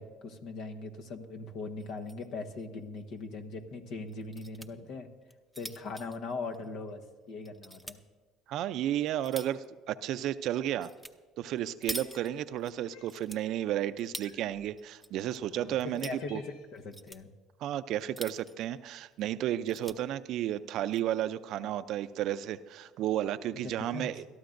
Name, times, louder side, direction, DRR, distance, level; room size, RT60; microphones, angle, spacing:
voice 1, 0.0-5.1 5.6-7.0 7.3-8.0 15.5-17.3 23.6-24.1, left 3 dB, 65° left, 6 dB, 1.2 m, -40 dB
sound 1, 1.8-2.3 2.6-2.7 3.0-3.1 4.1-4.7 5.2-7.0 7.5-8.0 8.6-9.7 10.8-11.1 11.4-12.7 13.1-14.3 14.8-15.4 15.7-16.2 16.8-17.2 17.9-18.7 19.1-19.2 19.5-20.0 20.7-21.0, right 1 dB, ahead, 0.7 m, -44 dB
voice 2, 8.5-10.9 11.4-16.4 17.6-24.3, right 12 dB, 65° right, 13 dB, 0.5 m, -33 dB
Cat, 11.8-12.6 12.9-13.2 14.2-14.7 15.4-15.5 15.9-16.9, left 3 dB, 90° left, 1.7 m, -57 dB
21.5 x 13.0 x 2.6 m, 1.3 s
hypercardioid pair, 70°, 0 cm